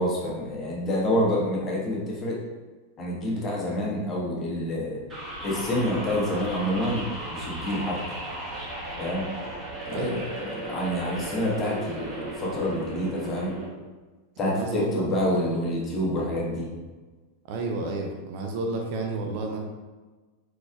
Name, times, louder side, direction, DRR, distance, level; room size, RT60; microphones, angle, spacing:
voice 1, 0.0-2.4 3.0-5.0 5.4-8.2 9.0-9.3 9.8-10.2 10.6-13.5 14.4-16.7, left 1 dB, 25° left, -5 dB, 1.3 m, -27 dB
sound 1, 5.1-13.7, right 1 dB, 20° right, 1.4 m, -36 dB
voice 2, 14.4-15.1 15.3-15.4 17.5-19.6, right 3 dB, 45° right, 2 dB, 0.5 m, -31 dB
4.8 x 3.9 x 2.4 m, 1.3 s
figure-of-eight pair, 90°, 0 cm